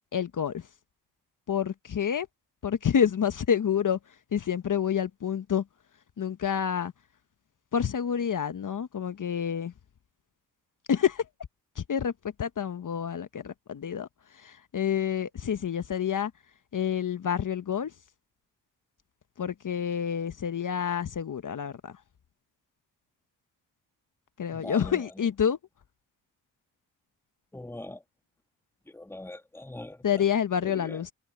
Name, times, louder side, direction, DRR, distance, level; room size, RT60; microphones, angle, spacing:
voice 1, 0.1-0.7 1.5-2.3 2.6-5.6 6.2-6.9 7.7-9.7 10.9-11.3 11.8-12.1 12.4-16.3 16.7-17.9 19.4-22.0 24.4-25.6 30.0-31.1, left 8 dB, 50° left, 1.3 m, -28 dB
voice 2, 24.5-25.1 27.5-28.0 28.9-30.2 30.6-31.0, left 1 dB, 5° left, 1.4 m, -42 dB
supercardioid pair, 50°, 40 cm